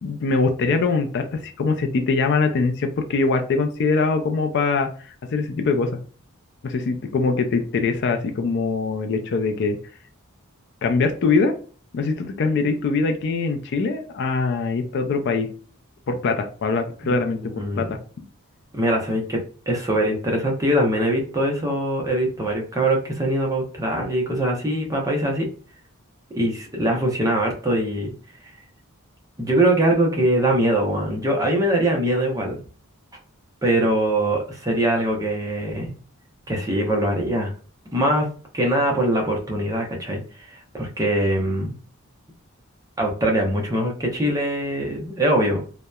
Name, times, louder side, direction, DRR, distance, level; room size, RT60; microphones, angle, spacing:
voice 1, 0.0-6.0 6.6-9.8 10.8-11.5 11.9-15.5 16.1-18.0, left 4 dB, 55° left, 6 dB, 0.4 m, -23 dB
voice 2, 17.0-17.9 18.7-19.4 19.7-25.5 26.3-28.1 29.4-32.6 33.6-35.9 36.5-37.5 37.9-38.3 38.5-41.7 43.0-45.6, right 1 dB, 15° right, 0 dB, 0.6 m, -22 dB
2.7 x 2.1 x 2.2 m, 0.41 s
head